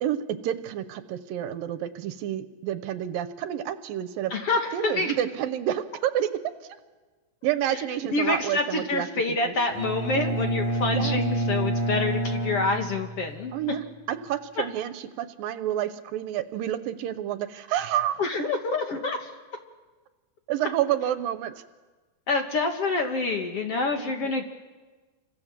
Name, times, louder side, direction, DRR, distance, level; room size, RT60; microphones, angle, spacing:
voice 1, 0.0-4.3 4.7-6.3 7.4-9.6 10.1-10.4 10.9-11.2 13.5-18.3 20.5-21.6 23.9-24.3, right 11 dB, 75° right, 12 dB, 2.5 m, -29 dB
voice 2, 4.3-5.1 8.1-13.5 18.2-19.3 22.3-24.5, left 3 dB, 50° left, 4 dB, 2.2 m, -27 dB
Bowed string instrument, 9.7-13.5, right 1 dB, 15° right, 1.6 m, -28 dB
28.5 x 25.0 x 7.5 m, 1.3 s
omnidirectional pair, 4.3 m